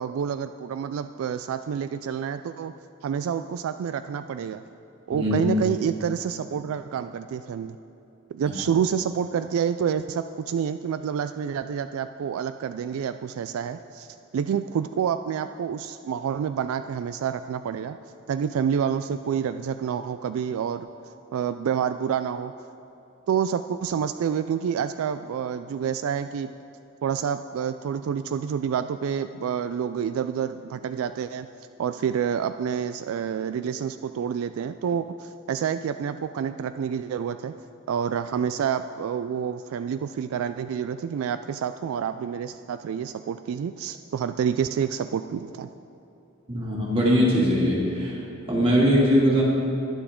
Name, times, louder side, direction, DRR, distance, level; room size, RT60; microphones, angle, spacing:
voice 1, 0.0-2.7 3.0-4.6 5.1-7.8 8.3-14.1 14.3-18.0 18.3-20.9 21.3-22.5 23.3-26.5 27.0-31.5 31.8-37.6 37.9-45.7, right 7 dB, 75° right, 10 dB, 0.3 m, -28 dB
voice 2, 46.5-48.2 48.5-49.4, equal, 25° right, -5 dB, 2.5 m, -21 dB
20.0 x 7.0 x 3.7 m, 2.9 s
head